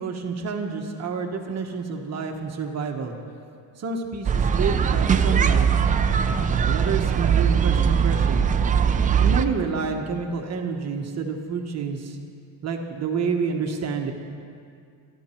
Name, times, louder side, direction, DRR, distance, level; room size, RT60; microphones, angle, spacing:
voice 1, 0.0-3.1 3.8-5.7 6.6-8.4 9.2-12.2 12.6-14.1, right 5 dB, 35° right, 3 dB, 1.2 m, -28 dB
sound 1, 4.2-9.4, right 7 dB, 20° right, 0.4 m, -20 dB
25.5 x 12.0 x 4.4 m, 2.3 s
cardioid pair, 165°, 45 cm